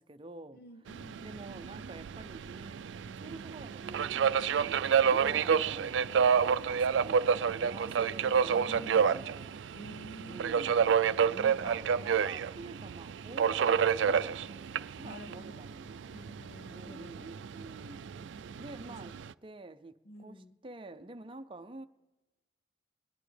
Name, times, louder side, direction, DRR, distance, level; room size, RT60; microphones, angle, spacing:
voice 1, 0.0-6.1 6.7-9.6 10.3-10.8 11.3-16.0 16.7-18.0 18.6-19.2 19.4-21.9, right 2 dB, 30° right, 0.5 m, -48 dB
voice 2, 0.5-1.2 8.7-9.2 9.7-10.9 14.0-14.2 15.0-15.7 16.1-17.2 18.9-19.0 20.1-20.6, equal, 60° left, 0.6 m, -49 dB
Subway metro underground, 0.9-19.3, right 7 dB, 85° right, 0.4 m, -29 dB
22.0 x 10.0 x 3.3 m
head